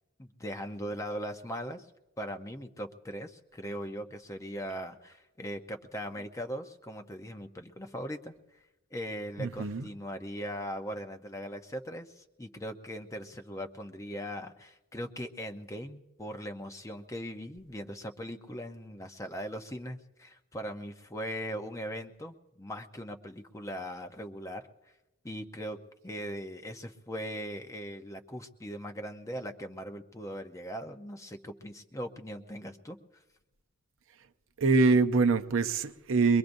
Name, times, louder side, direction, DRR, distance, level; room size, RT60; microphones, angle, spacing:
voice 1, 0.2-1.9 2.2-8.3 8.9-24.7 25.2-25.8 26.0-33.0, equal, 15° left, 0.7 m, -39 dB
voice 2, 9.4-9.9 34.6-36.4, right 4 dB, 65° right, 0.7 m, -24 dB
23.5 x 21.5 x 2.6 m
head